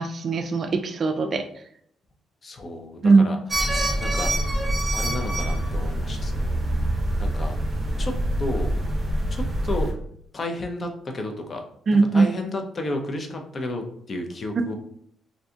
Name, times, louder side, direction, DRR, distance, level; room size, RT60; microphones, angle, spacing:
voice 1, 0.0-1.5 3.0-3.2 11.9-12.3, right 4 dB, 45° right, 7 dB, 0.3 m, -19 dB
voice 2, 2.4-3.4 4.0-4.3 4.9-6.6 7.2-7.6 8.0-8.7 9.3-9.9 10.3-11.6 12.1-14.8, left 2 dB, 40° left, 3 dB, 0.5 m, -32 dB
sound 1, 3.5-9.9, right 1 dB, 20° right, 0.7 m, -25 dB
2.5 x 2.3 x 2.7 m, 0.66 s
cardioid pair, 90°, 0 cm